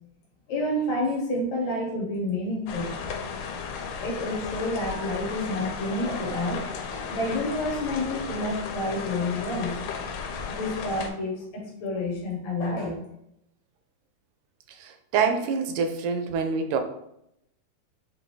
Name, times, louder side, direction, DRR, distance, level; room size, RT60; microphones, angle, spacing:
voice 1, 0.5-2.9 4.0-6.6 6.9-9.9 10.2-13.0, left 1 dB, 70° left, -1 dB, 1.8 m, -29 dB
sound 1, 2.7-11.1, left 6 dB, 90° left, 2.2 m, -35 dB
voice 2, 14.8-16.8, right 5 dB, 85° right, 7 dB, 2.1 m, -26 dB
6.1 x 2.7 x 2.7 m, 0.78 s
omnidirectional pair, 3.7 m